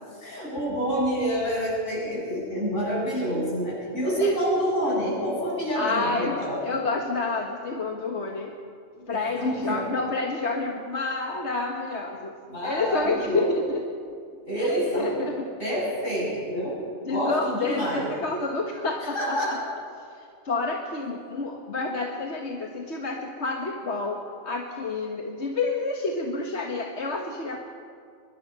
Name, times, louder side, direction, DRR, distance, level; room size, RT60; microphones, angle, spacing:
voice 1, 0.2-6.6 9.0-9.8 12.5-13.5 14.4-15.2 15.6-16.7 17.1-18.1 19.1-19.6, equal, 80° left, -5 dB, 8.4 m, -27 dB
voice 2, 5.7-6.4 6.6-8.5 9.1-12.3 12.6-13.8 14.6-15.5 17.1-19.6 20.4-27.6, left 3 dB, 65° left, 1 dB, 1.7 m, -29 dB
23.5 x 22.0 x 5.6 m, 2.3 s
omnidirectional pair, 1.3 m